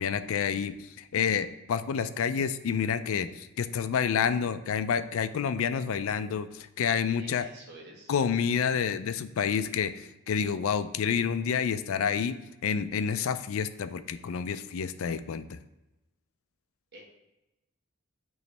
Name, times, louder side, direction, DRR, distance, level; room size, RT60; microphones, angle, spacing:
voice 1, 0.0-7.5 8.1-15.6, left 7 dB, 70° left, 12 dB, 0.4 m, -29 dB
voice 2, 7.2-8.1 16.9-17.0, right 2 dB, 50° right, -1 dB, 1.4 m, -49 dB
9.3 x 3.1 x 3.2 m, 0.98 s
head